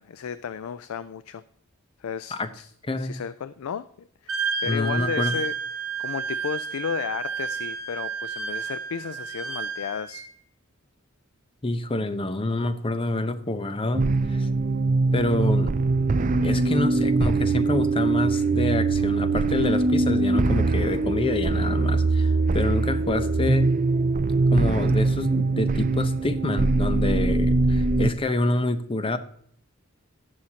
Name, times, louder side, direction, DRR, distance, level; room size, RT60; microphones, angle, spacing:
voice 1, 0.0-1.4 2.0-2.7 3.0-10.2, left 7 dB, 75° left, 14 dB, 0.4 m, -34 dB
voice 2, 2.8-3.2 4.6-5.4 11.6-14.5 15.1-15.7 16.4-23.7 24.5-29.2, left 2 dB, 25° left, 11 dB, 0.7 m, -27 dB
Wind instrument woodwind instrument, 4.3-10.3, right 5 dB, 75° right, 1.0 m, -31 dB
sound 1, 13.9-28.1, right 3 dB, 40° right, 0.5 m, -22 dB
18.0 x 6.4 x 2.8 m, 0.64 s
head